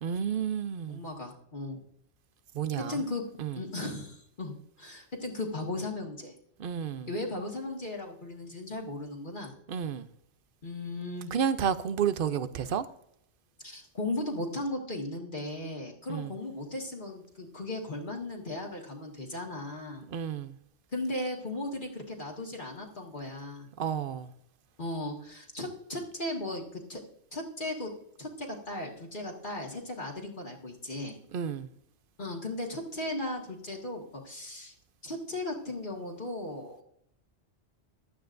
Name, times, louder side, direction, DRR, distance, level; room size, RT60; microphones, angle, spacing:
voice 1, 0.0-1.0 2.5-3.0 3.4-3.6 6.6-7.1 9.7-10.1 11.3-12.9 16.1-16.3 20.1-20.5 23.8-24.3 31.3-31.7, right 8 dB, 55° right, 0.8 m, -31 dB
voice 2, 0.9-1.8 2.9-3.2 3.6-6.3 7.1-9.5 10.6-11.3 13.6-20.1 20.9-23.7 24.8-27.0 27.3-27.9 28.2-31.2 32.2-34.7 35.0-36.8, left 2 dB, 45° left, 1.9 m, -36 dB
15.0 x 12.0 x 2.6 m
omnidirectional pair, 1.2 m